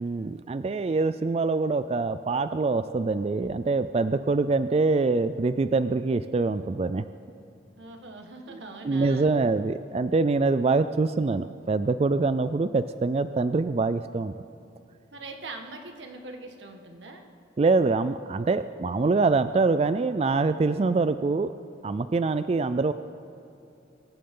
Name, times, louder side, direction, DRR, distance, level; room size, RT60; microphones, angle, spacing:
voice 1, 0.0-7.1 8.8-14.3 17.6-21.5 21.8-22.9, right 3 dB, 35° right, 12 dB, 0.3 m, -24 dB
voice 2, 7.8-9.3 15.1-17.3, right 2 dB, 85° right, 3 dB, 1.7 m, -42 dB
24.5 x 14.5 x 3.8 m, 2.7 s
head